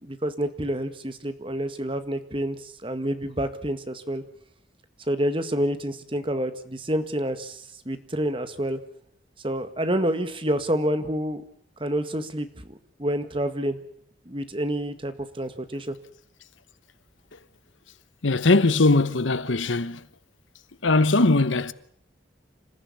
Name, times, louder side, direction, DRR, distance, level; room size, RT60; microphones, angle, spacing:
voice 1, 0.0-4.2 5.1-8.8 9.4-11.4 11.8-13.8 14.3-16.0, right 1 dB, 30° right, 1.8 m, -28 dB
voice 2, 18.2-20.0 20.8-21.7, left 3 dB, 90° left, 1.1 m, -20 dB
27.5 x 15.0 x 8.6 m
head